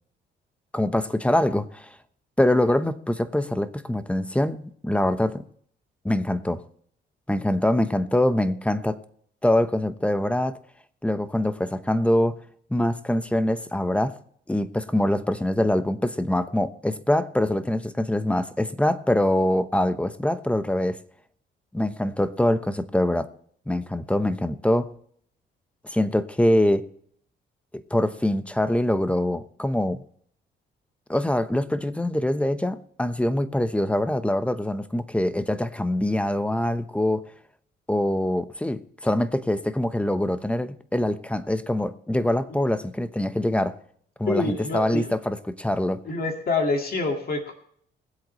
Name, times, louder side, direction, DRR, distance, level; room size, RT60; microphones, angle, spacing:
voice 1, 0.7-1.9 2.4-5.4 6.0-6.6 7.3-9.0 9.4-10.6 11.0-12.4 12.7-14.2 14.5-21.0 21.7-23.3 23.7-24.9 25.9-26.8 27.9-30.0 31.1-37.2 37.9-43.7 44.2-46.0, left 1 dB, 5° left, 11 dB, 1.0 m, -24 dB
voice 2, 44.3-45.1 46.1-47.5, left 3 dB, 50° left, 3 dB, 2.1 m, -26 dB
22.0 x 8.0 x 3.2 m, 0.63 s
cardioid pair, 90°, 20 cm